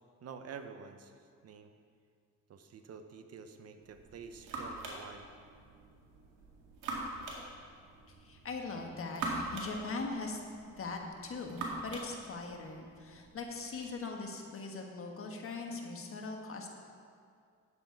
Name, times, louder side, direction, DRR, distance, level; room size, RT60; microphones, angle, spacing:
voice 1, 0.2-1.1 1.4-1.7 2.5-5.3, right 6 dB, 55° right, 8 dB, 0.9 m, -48 dB
sound 1, 3.8-13.9, right 2 dB, 90° right, 2.0 m, -44 dB
voice 2, 8.2-10.4 10.8-16.7, left 3 dB, 45° left, 2 dB, 1.5 m, -41 dB
9.7 x 7.7 x 4.6 m, 2.2 s
cardioid pair, 90°, 30 cm